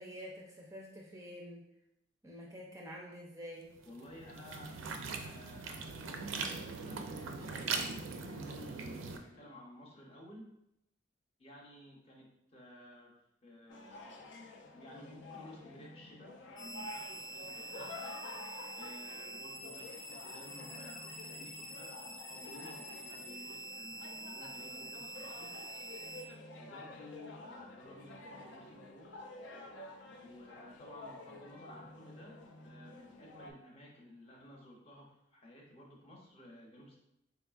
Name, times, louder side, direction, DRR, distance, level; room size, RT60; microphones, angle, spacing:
voice 1, 0.0-1.6 2.2-3.7, equal, 15° right, -3 dB, 0.4 m, -48 dB
sound 1, 3.7-9.2, right 4 dB, 85° right, 0.4 m, -40 dB
voice 2, 3.8-4.7 5.2-10.5 11.4-13.1 13.4-14.3 14.7-18.0 18.7-25.6 26.6-29.2 30.2-37.0, left 1 dB, 30° left, -2 dB, 0.7 m, -54 dB
sound 2, 13.7-33.5, left 2 dB, 65° left, 0.4 m, -50 dB
sound 3, 16.6-26.2, right 1 dB, 85° left, 1.0 m, -46 dB
3.9 x 3.4 x 2.3 m, 0.80 s
head